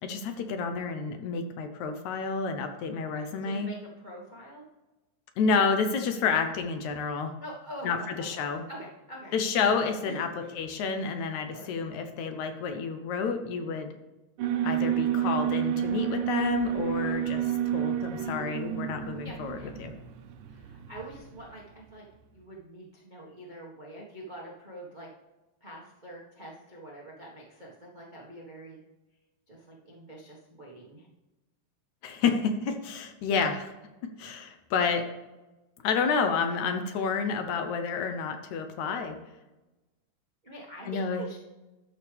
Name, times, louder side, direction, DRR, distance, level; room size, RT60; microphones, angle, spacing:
voice 1, 0.0-3.7 5.4-7.3 7.8-8.6 9.3-10.3 10.6-13.9 14.6-17.5 17.7-19.9 32.0-33.7 34.0-35.1 35.8-39.2 40.9-41.2, left 5 dB, 70° left, 6 dB, 2.0 m, -29 dB
voice 2, 3.1-4.6 7.4-8.3 8.7-9.3 9.7-10.5 11.5-11.7 14.4-14.6 17.0-17.2 19.2-19.7 20.5-22.0 22.3-25.1 25.6-28.8 29.5-31.1 40.4-41.4, right 1 dB, 50° right, -4 dB, 0.5 m, -45 dB
Alarm, 14.4-21.5, right 10 dB, 90° right, 2.4 m, -30 dB
12.5 x 6.4 x 3.4 m, 1.1 s
omnidirectional pair, 3.8 m